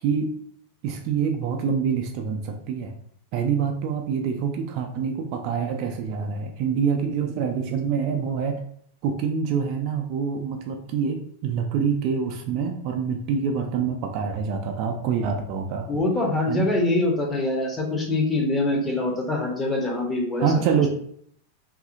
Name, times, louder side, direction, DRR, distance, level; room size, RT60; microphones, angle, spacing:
voice 1, 0.8-2.9 3.3-8.6 9.0-15.9 16.5-16.7 20.4-20.9, right 6 dB, 45° right, 4 dB, 0.3 m, -26 dB
voice 2, 15.9-20.5, left 2 dB, 15° left, 0 dB, 0.6 m, -24 dB
2.7 x 2.5 x 2.4 m, 0.65 s
figure-of-eight pair, 90°, 0 cm